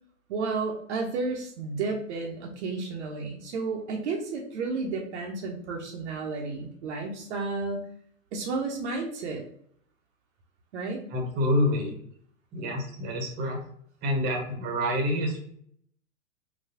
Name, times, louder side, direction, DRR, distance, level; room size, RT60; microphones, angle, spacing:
voice 1, 0.3-7.9 8.3-9.4 10.7-11.0, right 3 dB, 55° right, 1 dB, 0.7 m, -32 dB
voice 2, 11.1-12.0 12.5-13.6 14.0-15.4, left 1 dB, 25° right, 1 dB, 0.9 m, -27 dB
3.9 x 2.2 x 2.7 m, 0.66 s
hypercardioid pair, 115°, 41 cm